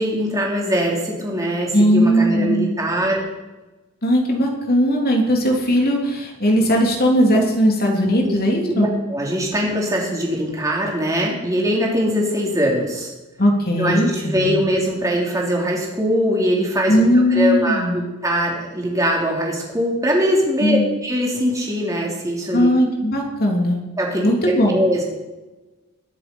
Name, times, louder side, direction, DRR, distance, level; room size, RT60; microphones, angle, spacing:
voice 1, 0.0-3.2 8.2-8.3 8.7-13.1 13.8-22.7 24.0-25.0, equal, 15° right, -2 dB, 3.4 m, -22 dB
voice 2, 1.7-2.7 4.0-8.9 13.4-14.5 16.9-18.1 20.6-20.9 22.5-23.8 24.2-24.7, equal, 45° left, 0 dB, 3.3 m, -18 dB
22.0 x 7.7 x 5.5 m, 1.1 s
head